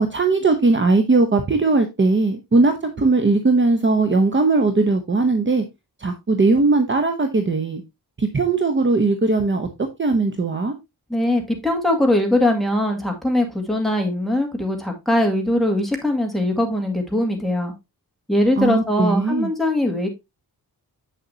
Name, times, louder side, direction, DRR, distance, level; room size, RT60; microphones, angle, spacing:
voice 1, 0.0-5.6 6.0-7.8 8.2-9.7 10.0-10.7 18.6-19.5, right 3 dB, 30° right, 0.8 m, -19 dB
voice 2, 11.1-17.7 18.3-20.1, left 1 dB, ahead, 2.1 m, -21 dB
7.7 x 6.7 x 2.7 m
wide cardioid pair, 115°, 38 cm